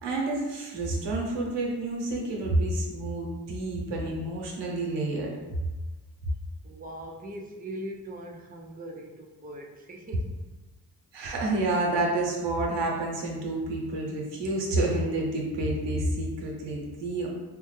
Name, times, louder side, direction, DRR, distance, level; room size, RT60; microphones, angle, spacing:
voice 1, 0.0-5.3 11.1-17.3, right 2 dB, 90° right, -1 dB, 0.8 m, -29 dB
voice 2, 6.6-10.4, right 1 dB, 20° right, 0 dB, 0.5 m, -41 dB
3.4 x 2.2 x 3.2 m, 1.2 s
cardioid pair, 60°, 42 cm